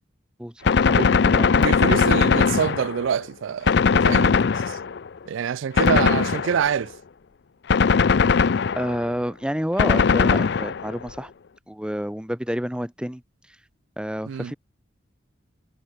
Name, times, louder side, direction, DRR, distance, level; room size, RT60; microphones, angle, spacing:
voice 1, 0.4-1.0 1.3-1.7 8.4-8.5 8.8-11.3 11.7-13.2 13.5-13.6 14.0-14.5, equal, 5° right, 1.1 m, -29 dB
Gunshot gunfire, 0.7-3.2 3.7-5.1 5.8-6.8 7.7-9.1 9.8-11.0, left 5 dB, 55° left, 0.4 m, -19 dB
voice 2, 1.5-4.4 4.7-4.8 5.3-6.9 14.3-14.5, right 7 dB, 70° right, 0.3 m, -26 dB
head